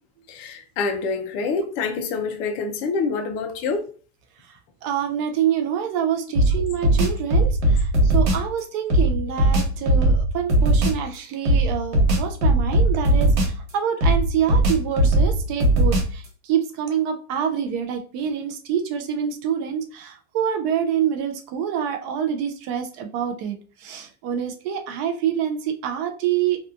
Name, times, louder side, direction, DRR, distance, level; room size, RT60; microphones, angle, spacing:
voice 1, 0.3-3.9, left 4 dB, 40° left, 0.4 m, -26 dB
voice 2, 4.8-16.2 16.5-23.6 23.8-26.6, right 8 dB, 40° right, 0.4 m, -26 dB
sound 1, 6.3-8.5 8.9-11.0 11.4-13.7 14.0-16.2, right 1 dB, 90° right, 1.2 m, -19 dB
2.6 x 2.3 x 2.3 m
supercardioid pair, 155°, 34 cm